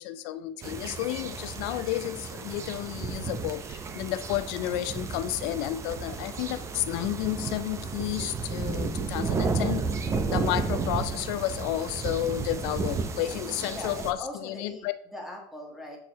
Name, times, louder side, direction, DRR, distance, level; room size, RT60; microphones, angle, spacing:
voice 1, 0.0-9.9 10.3-14.9, left 14 dB, 75° left, 12 dB, 0.4 m, -31 dB
sound 1, 0.6-14.1, right 4 dB, 25° right, 0.6 m, -32 dB
voice 2, 13.7-14.8 15.1-16.0, left 1 dB, ahead, 0 dB, 1.5 m, -40 dB
6.5 x 4.5 x 4.0 m, 0.74 s
cardioid pair, 150°, 13 cm